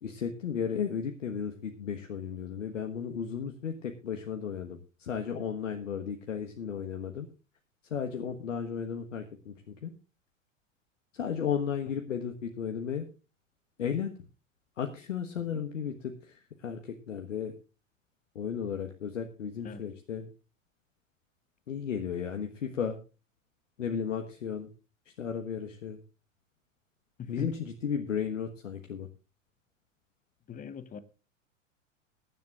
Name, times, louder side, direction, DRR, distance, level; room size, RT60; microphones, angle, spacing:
voice 1, 0.0-7.3 7.9-9.9 11.1-13.1 13.8-14.1 14.8-17.5 18.3-20.3 21.7-23.0 23.8-24.7 25.2-26.0 27.3-29.1, left 7 dB, 70° left, 1.4 m, -34 dB
voice 2, 27.2-27.5 30.5-31.0, left 7 dB, 20° left, 1.1 m, -40 dB
22.0 x 10.5 x 2.4 m
figure-of-eight pair, 90°, 39 cm